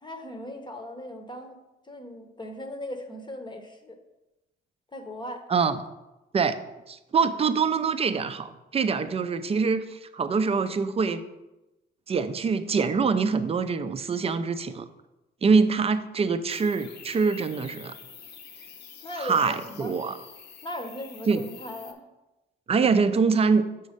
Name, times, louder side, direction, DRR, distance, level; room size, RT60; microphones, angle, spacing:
voice 1, 0.0-1.6 1.9-4.0 4.9-5.4 19.0-19.9 20.6-22.0, left 1 dB, 20° left, 4 dB, 0.8 m, -38 dB
voice 2, 6.9-11.2 12.1-14.8 15.4-17.9 19.2-20.2 21.3-21.4 22.7-23.7, right 5 dB, 30° right, 11 dB, 0.5 m, -24 dB
sound 1, 16.5-21.9, left 7 dB, 55° left, 0.8 m, -47 dB
6.4 x 4.1 x 5.0 m, 1.0 s
cardioid pair, 90°, 20 cm